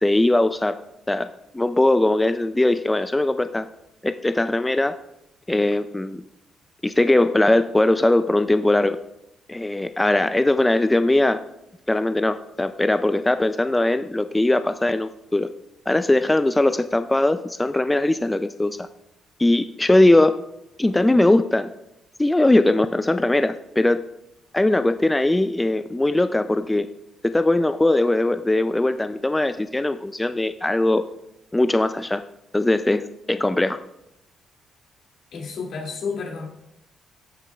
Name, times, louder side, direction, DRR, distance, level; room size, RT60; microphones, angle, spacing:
voice 1, 0.0-0.7 1.1-1.3 1.5-3.7 4.0-4.9 5.5-6.2 6.8-9.0 9.5-11.4 11.9-15.5 15.9-18.9 19.4-20.4 20.8-21.7 22.2-24.0 24.5-26.9 27.2-31.0 31.5-32.2 32.5-33.8, left 2 dB, 10° left, 10 dB, 0.3 m, -20 dB
voice 2, 35.3-36.5, left 5 dB, 70° left, -1 dB, 2.4 m, -30 dB
13.5 x 8.0 x 2.3 m, 0.85 s
cardioid pair, 90°, 0 cm